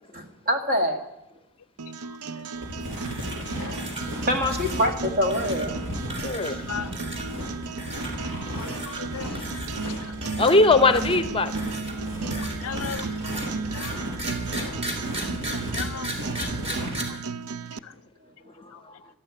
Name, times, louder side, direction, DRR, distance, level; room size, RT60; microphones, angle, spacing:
voice 1, 0.1-1.0 4.3-5.7, equal, 40° right, 2.0 m, -24 dB
sound 1, 1.8-17.8, right 4 dB, 80° right, 0.6 m, -35 dB
sound 2, 2.6-17.0, equal, 60° right, 4.8 m, -35 dB
sound 3, 2.9-3.5 3.7-4.0 4.5-4.9 5.3-5.7 6.1-6.6 6.9-7.3 7.8-8.1 8.5-9.0 9.3-9.8 10.2-11.1 11.5-17.0, right 1 dB, 25° right, 3.2 m, -36 dB
voice 2, 6.2-6.7 9.3-9.5 10.4-11.5 18.6-18.9, left 3 dB, 25° left, 0.7 m, -21 dB
voice 3, 8.6-9.4 10.0-10.1 12.4-13.2 13.7-14.0 14.7-14.8 15.5-16.1 16.4-16.5 17.1-17.2 17.8-17.9, left 8 dB, 70° left, 0.5 m, -37 dB
12.5 x 12.0 x 9.5 m
head